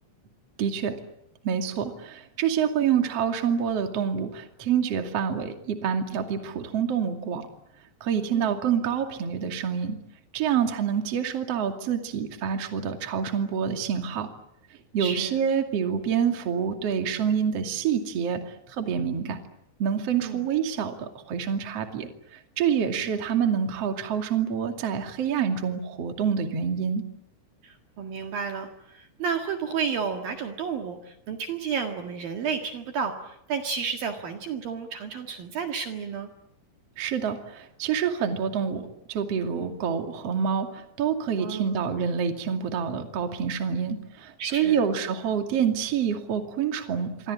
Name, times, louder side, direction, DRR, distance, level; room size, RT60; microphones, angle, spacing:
voice 1, 0.6-1.0 1.4-7.5 8.0-10.0 10.3-14.3 14.9-19.4 19.8-27.0 37.0-47.3, right 7 dB, 40° right, 5 dB, 2.9 m, -27 dB
voice 2, 15.0-15.4 20.2-20.4 23.0-23.2 27.6-36.3 39.5-39.7 41.4-41.9 44.4-44.8, right 6 dB, 60° right, 4 dB, 3.3 m, -32 dB
27.5 x 24.0 x 8.7 m, 0.75 s
omnidirectional pair, 5.3 m